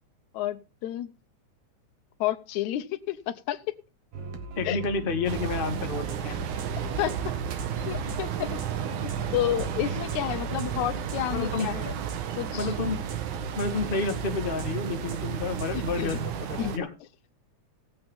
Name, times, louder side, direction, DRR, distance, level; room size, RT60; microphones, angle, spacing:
voice 1, 0.3-1.1 2.2-3.6 4.6-4.8 7.0-7.1 7.9-8.6 9.0-11.9 12.4-12.7 15.7-16.2 16.6-16.7, left 12 dB, 80° left, 2.0 m, -30 dB
sound 1, 4.1-16.4, right 5 dB, 55° right, 2.6 m, -38 dB
voice 2, 4.6-6.4 11.3-11.7 12.5-13.0 13.6-16.9, left 4 dB, 25° left, 1.2 m, -30 dB
sound 2, 5.3-16.8, right 8 dB, 90° right, 2.6 m, -33 dB
18.5 x 7.9 x 3.6 m
omnidirectional pair, 3.4 m